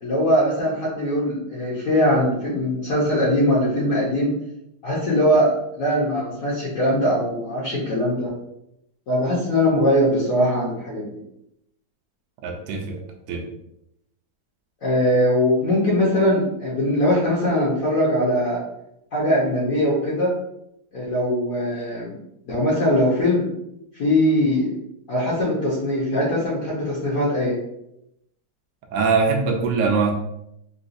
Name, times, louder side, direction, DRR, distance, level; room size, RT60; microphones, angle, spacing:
voice 1, 0.0-4.3 4.8-5.5 5.8-8.3 9.1-11.2 14.8-18.6 19.1-20.3 20.9-22.1 22.5-23.5 24.0-24.7 25.1-27.6, equal, 55° left, -6 dB, 1.1 m, -21 dB
voice 2, 12.4-13.0 13.3-13.4 28.9-30.1, right 4 dB, 75° right, 2 dB, 1.2 m, -22 dB
4.0 x 2.3 x 2.5 m, 0.81 s
omnidirectional pair, 2.0 m